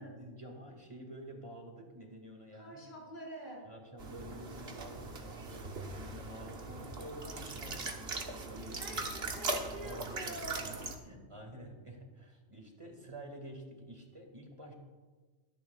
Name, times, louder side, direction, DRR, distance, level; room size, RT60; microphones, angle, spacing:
voice 1, 0.0-2.9 3.7-9.2 9.7-10.3 10.7-10.8 11.0-14.7, right 1 dB, 30° right, 2 dB, 2.1 m, -49 dB
voice 2, 2.5-3.6 8.7-10.9, right 1 dB, 90° left, -4 dB, 4.9 m, -47 dB
sound 1, 4.0-11.0, right 3 dB, 75° right, 1.4 m, -40 dB
23.0 x 10.5 x 2.4 m, 1.4 s
omnidirectional pair, 1.1 m